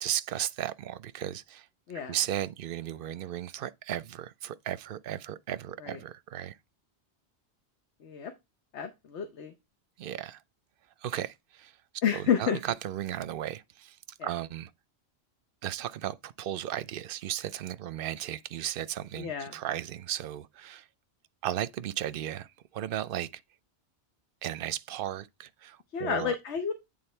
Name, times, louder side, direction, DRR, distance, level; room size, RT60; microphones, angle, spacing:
voice 1, 0.0-1.7 2.1-6.6 10.0-10.4 11.0-11.8 12.1-14.7 15.6-20.9 21.4-23.4 24.4-26.3, right 11 dB, 60° right, 0.7 m, -35 dB
voice 2, 8.0-8.3 8.7-9.5 12.0-12.6 14.2-14.3 19.2-19.5 25.9-26.7, left 7 dB, 85° left, 1.2 m, -30 dB
8.9 x 3.7 x 4.4 m
omnidirectional pair, 1.1 m